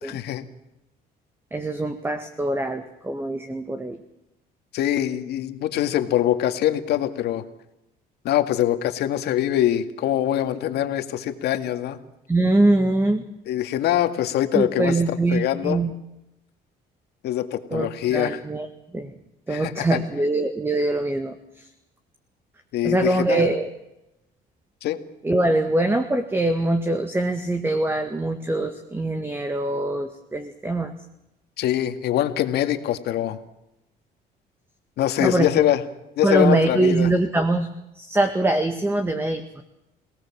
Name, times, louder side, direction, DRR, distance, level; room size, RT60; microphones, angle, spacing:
voice 1, 0.0-0.5 4.7-7.4 8.2-12.0 13.5-14.9 15.3-15.8 17.2-18.4 19.5-20.0 22.7-23.4 24.8-25.0 31.6-33.4 35.0-35.8 36.2-37.1, left 12 dB, 75° left, 7 dB, 2.2 m, -23 dB
voice 2, 1.5-4.0 12.3-13.2 14.5-15.9 17.7-18.7 18.9-19.1 19.5-21.7 22.8-23.7 25.2-30.9 35.2-35.7 36.2-37.7 38.0-39.6, right 2 dB, 15° right, 7 dB, 1.9 m, -23 dB
28.5 x 18.0 x 7.4 m, 0.90 s
cardioid pair, 110°, 17 cm